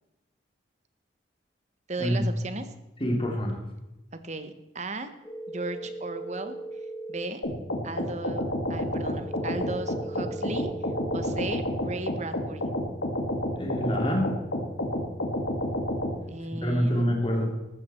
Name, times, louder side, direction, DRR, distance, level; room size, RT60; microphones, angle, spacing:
voice 1, 1.9-2.7 4.2-5.1 5.5-6.6 7.1-7.4 7.8-8.4 8.7-10.7 11.1-12.7 16.3-17.1, right 2 dB, 35° right, 9 dB, 1.2 m, -35 dB
voice 2, 3.0-3.6 13.6-14.3 16.5-17.5, equal, 25° left, 1 dB, 3.1 m, -26 dB
sound 1, 5.2-7.2 9.2-11.2, right 2 dB, 5° left, 6.4 m, -38 dB
sound 2, 7.4-16.2, left 1 dB, 70° left, 2.3 m, -30 dB
14.5 x 13.0 x 4.5 m, 0.97 s
head